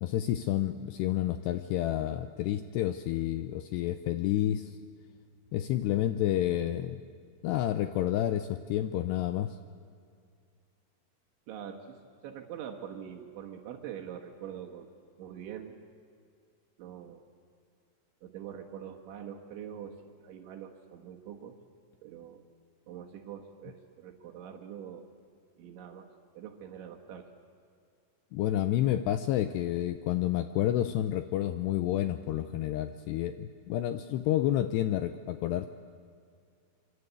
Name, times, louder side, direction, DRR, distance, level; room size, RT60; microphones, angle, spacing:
voice 1, 0.0-4.8 5.5-7.0 7.4-9.6 28.3-35.7, left 12 dB, 85° left, 10 dB, 2.4 m, -29 dB
voice 2, 11.5-12.0 12.2-14.9 15.2-15.8 16.8-17.2 18.2-21.6 22.0-22.4 22.9-25.1 25.6-27.3, right 9 dB, 70° right, 2 dB, 3.6 m, -44 dB
25.5 x 24.5 x 8.3 m, 2.2 s
omnidirectional pair, 5.7 m